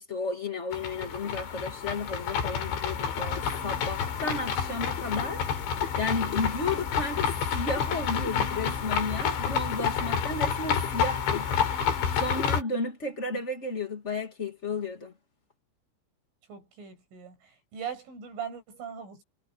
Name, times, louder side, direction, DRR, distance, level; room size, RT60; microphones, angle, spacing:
voice 1, 0.0-5.5 6.0-11.5 12.2-15.1, left 3 dB, 55° left, 0.7 m, -33 dB
sound 1, 0.7-12.6, left 7 dB, 75° left, 5.2 m, -29 dB
voice 2, 16.5-17.4 17.7-19.2, right 7 dB, 85° right, 10.5 m, -39 dB
omnidirectional pair, 5.4 m